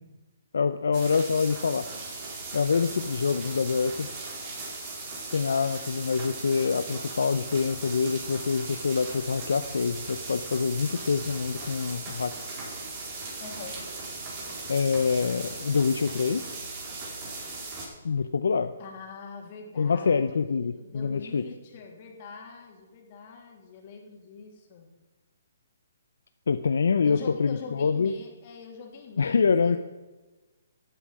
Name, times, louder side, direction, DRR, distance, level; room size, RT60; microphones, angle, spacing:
voice 1, 0.5-1.9 2.5-4.1 5.3-12.3 14.7-16.4 18.0-18.7 19.8-21.5 26.5-28.2 29.2-29.8, left 5 dB, 75° left, 10 dB, 0.6 m, -25 dB
sound 1, 0.9-17.9, right 3 dB, 35° right, 4.8 m, -38 dB
voice 2, 13.4-13.8 18.8-24.9 27.0-29.7, left 5 dB, 40° left, 2 dB, 3.0 m, -44 dB
12.5 x 8.5 x 7.4 m, 1.2 s
hypercardioid pair, 140°, 0 cm